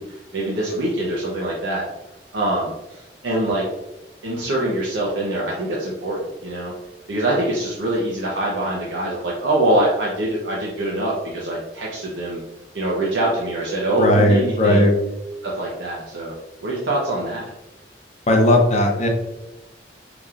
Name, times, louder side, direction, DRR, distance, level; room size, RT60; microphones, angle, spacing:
voice 1, 0.0-1.9 2.3-3.6 4.2-6.7 7.1-12.4 12.7-14.9 15.4-16.3 16.6-17.5, right 1 dB, 90° right, -4 dB, 0.8 m, -24 dB
voice 2, 14.0-14.9 18.3-19.1, left 1 dB, 40° left, 1 dB, 0.7 m, -16 dB
5.1 x 3.0 x 2.4 m, 1.0 s
head